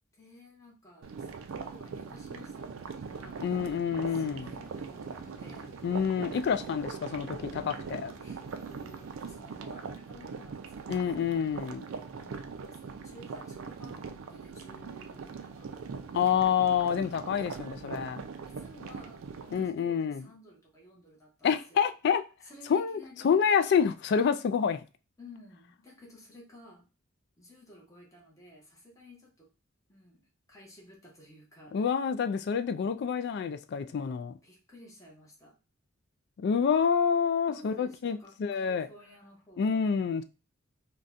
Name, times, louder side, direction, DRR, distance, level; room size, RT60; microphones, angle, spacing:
voice 1, 0.2-3.4 4.1-5.7 8.2-11.3 12.1-14.0 14.3-15.7 18.4-21.8 22.4-23.4 25.2-26.9 27.4-29.5 29.9-31.7 34.4-35.5 37.5-39.9, left 1 dB, 15° left, 0.9 m, -54 dB
sound 1, 1.0-19.7, right 5 dB, 85° right, 0.4 m, -41 dB
voice 2, 3.4-4.5 5.8-8.1 10.9-11.8 16.1-18.2 19.5-20.3 21.4-22.2 22.7-24.8 31.7-34.4 36.4-38.9 39.6-40.2, left 7 dB, 55° left, 0.3 m, -28 dB
sound 2, 4.4-9.6, right 1 dB, 15° right, 0.6 m, -55 dB
3.9 x 2.2 x 2.5 m
head